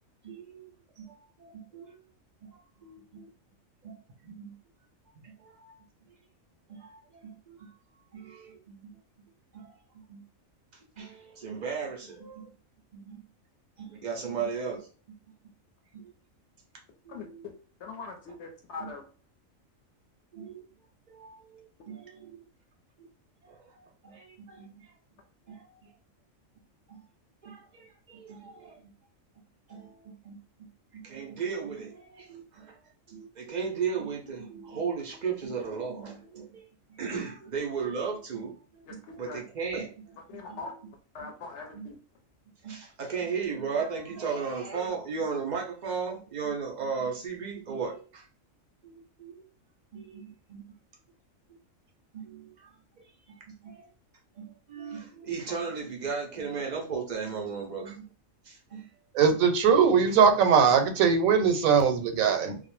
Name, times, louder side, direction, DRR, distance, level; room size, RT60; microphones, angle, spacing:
voice 1, 0.2-0.7 1.0-2.0 2.4-3.3 3.8-4.5 5.2-5.8 6.7-7.7 8.1-8.9 9.5-9.7 10.1-10.2 11.0-12.6 12.9-13.3 13.8-15.2 15.9-16.1 17.0-17.5 18.8-18.9 20.3-20.6 21.1-22.4 23.4-24.9 25.5-25.8 26.9-27.0 27.4-28.8 29.7-30.4 30.9-32.8 33.1-36.6 36.9-40.8 41.2-41.3 41.7-41.9 42.6-48.3 48.8-49.4 49.9-50.6 52.1-52.7 53.3-53.9 54.4-58.1 58.4-58.9 59.2-59.4 60.1-60.2 60.8-60.9 62.2-62.6, right 5 dB, 70° right, 0.4 m, -36 dB
voice 2, 17.8-19.0 38.9-39.4 40.3-40.7 41.1-42.0, left 4 dB, 65° left, 0.8 m, -41 dB
voice 3, 59.1-62.6, right 6 dB, 85° right, 1.0 m, -21 dB
2.4 x 2.0 x 3.0 m
omnidirectional pair, 1.4 m